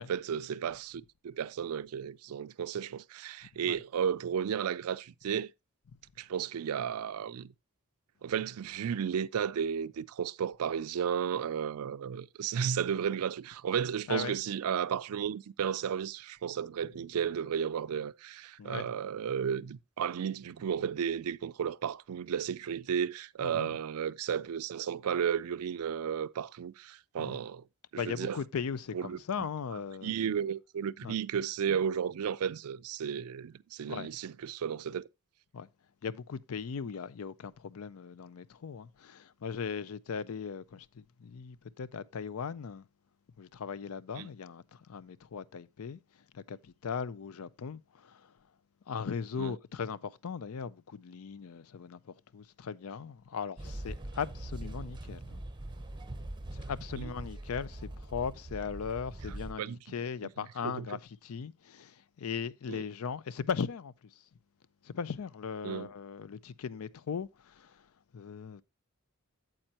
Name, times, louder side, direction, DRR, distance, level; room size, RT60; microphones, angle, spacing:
voice 1, 0.0-5.5 6.2-7.5 8.2-27.6 27.9-28.4 28.9-29.2 30.0-35.0 44.2-44.3 49.4-49.5 57.0-57.1 59.6-59.8 60.6-60.9 62.7-62.8 65.6-65.9, right 8 dB, 75° right, 0.4 m, -33 dB
voice 2, 28.0-30.3 31.0-31.2 33.9-34.1 35.5-35.7 36.0-42.9 43.4-46.0 46.3-48.3 48.9-55.4 56.5-63.9 64.8-67.8 68.1-68.6, left 6 dB, 70° left, 0.4 m, -38 dB
sound 1, 53.6-59.5, right 1 dB, 20° right, 0.7 m, -42 dB
8.9 x 7.7 x 2.8 m
head